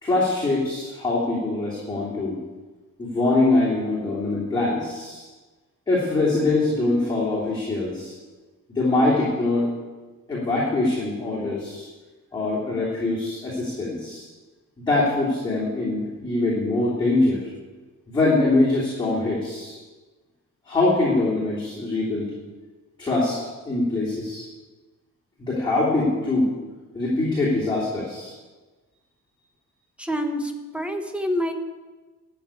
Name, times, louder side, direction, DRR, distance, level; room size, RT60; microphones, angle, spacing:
voice 1, 0.0-2.4 3.0-5.3 5.9-8.1 8.7-9.7 10.3-11.9 12.3-14.2 14.8-17.5 18.1-19.7 20.6-22.3 23.0-23.4 23.6-24.4 25.4-26.5 26.9-28.3, left 2 dB, 15° left, -8 dB, 2.9 m, -23 dB
voice 2, 30.0-31.5, equal, 5° right, 5 dB, 0.9 m, -27 dB
12.5 x 6.2 x 8.8 m, 1.3 s
cardioid pair, 165°, 33 cm